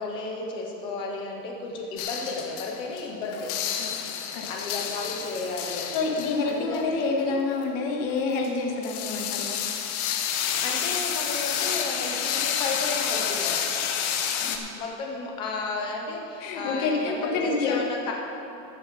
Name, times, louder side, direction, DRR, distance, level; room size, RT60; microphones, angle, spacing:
voice 1, 0.0-3.5 4.3-6.0 6.4-6.9 7.1-7.4 10.4-14.0 14.8-18.1, left 3 dB, 10° left, 0 dB, 0.3 m, -33 dB
sound 1, 2.0-3.1 3.3-7.3 8.4-14.6, left 8 dB, 60° left, 1.2 m, -29 dB
voice 2, 3.8-4.5 5.9-9.6 14.4-14.7 16.4-17.8, left 3 dB, 40° left, 1 dB, 1.6 m, -28 dB
13.5 x 7.5 x 5.7 m, 2.8 s
supercardioid pair, 160°, 50 cm